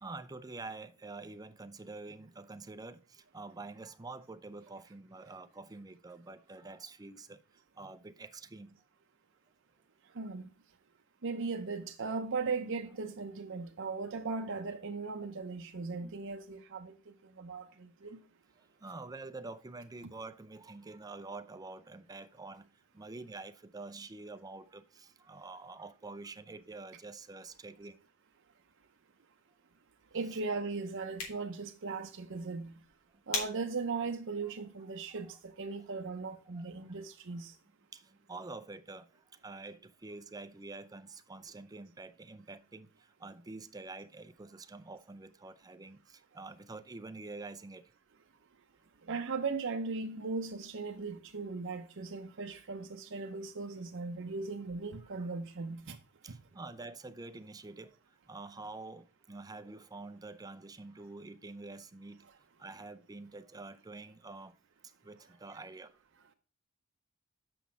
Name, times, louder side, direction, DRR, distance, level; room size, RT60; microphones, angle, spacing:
voice 1, 0.0-7.4 7.8-8.8 16.0-16.1 18.8-22.7 22.9-28.0 30.3-30.4 34.4-34.5 35.1-35.4 36.5-36.7 37.9-39.1 39.4-42.9 43.2-47.8 55.2-55.3 56.2-57.9 58.3-62.3 62.6-64.5 65.0-65.9, right 3 dB, 20° right, 0.5 m, -47 dB
voice 2, 10.1-10.5 11.2-16.9 17.4-18.2 30.1-32.8 33.3-37.5 49.1-56.0 56.3-56.4, right 4 dB, 65° right, 0.7 m, -38 dB
sound 1, 30.9-36.0, left 4 dB, 70° left, 3.4 m, -44 dB
6.8 x 6.1 x 4.7 m
head